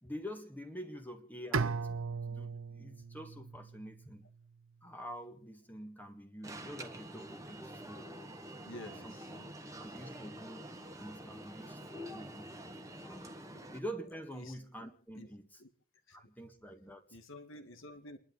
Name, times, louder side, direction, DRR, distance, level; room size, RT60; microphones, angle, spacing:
voice 1, 0.0-4.3 4.8-8.3 9.0-9.1 9.6-12.5 13.0-13.3 13.7-15.5 16.1-17.2, equal, 10° left, 5 dB, 1.7 m, -47 dB
Bowed string instrument, 1.5-4.6, right 5 dB, 80° right, 0.7 m, -38 dB
Alarm, 6.4-13.8, right 1 dB, 15° right, 1.5 m, -47 dB
voice 2, 8.6-9.7 13.5-13.6 14.3-14.6 15.1-15.3 15.6-15.7 16.1-16.2 17.1-18.2, left 1 dB, 70° left, 8 dB, 2.2 m, -50 dB
30.0 x 11.5 x 4.1 m, 0.41 s
head